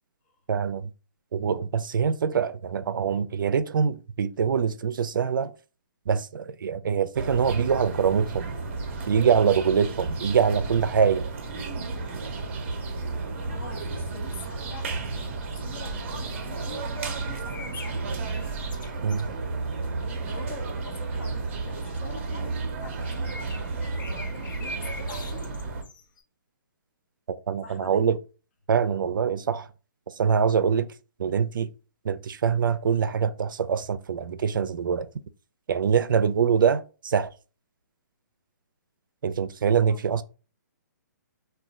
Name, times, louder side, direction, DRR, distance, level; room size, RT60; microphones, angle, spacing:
voice 1, 0.5-0.9 1.3-5.5 6.1-8.5 9.1-11.3 19.0-19.3 27.5-28.2 28.7-29.7 30.2-30.9 31.2-31.7 32.0-35.1 35.7-37.3 39.2-40.2, right 7 dB, 90° right, 0.4 m, -24 dB
sound 1, 7.1-25.8, right 3 dB, 40° right, 0.5 m, -32 dB
voice 2, 13.3-18.2 18.7-19.1 20.0-25.5 27.6-28.1 39.9-40.2, left 4 dB, 35° left, 0.5 m, -46 dB
sound 2, 16.9-19.2 23.0-26.2, left 1 dB, 80° left, 0.7 m, -43 dB
2.4 x 2.2 x 4.0 m
hypercardioid pair, 170°, 11 cm